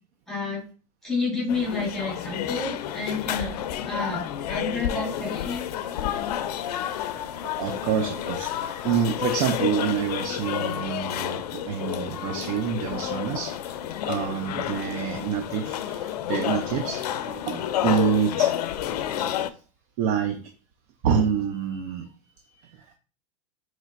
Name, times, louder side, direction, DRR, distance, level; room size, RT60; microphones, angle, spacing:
voice 1, 0.3-0.6 1.0-3.5 3.8-5.7, left 3 dB, ahead, 1.6 m, -30 dB
sound 1, 1.5-19.5, left 11 dB, 80° left, 0.4 m, -30 dB
voice 2, 6.9-7.3 7.6-18.7 19.2-19.3 20.0-20.5 21.0-22.1 22.4-22.9, right 7 dB, 55° right, 0.5 m, -27 dB
4.4 x 3.1 x 2.4 m
hypercardioid pair, 120°, 20 cm